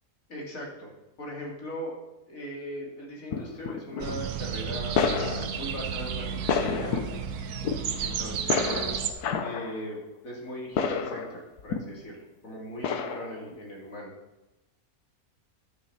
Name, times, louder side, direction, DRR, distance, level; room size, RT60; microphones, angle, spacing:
voice 1, 0.3-0.9 1.2-1.9 2.3-5.0 5.5-7.0 8.0-9.1 9.4-14.1, equal, 60° left, -2 dB, 3.0 m, -39 dB
sound 1, 3.3-4.2 4.9-5.6 6.3-7.3 7.6-7.8 8.5-9.8 10.7-12.1 12.8-13.6, left 6 dB, 90° left, 1.4 m, -29 dB
sound 2, 4.0-9.1, right 7 dB, 85° right, 1.3 m, -32 dB
11.5 x 6.4 x 5.6 m, 1.0 s
omnidirectional pair, 1.6 m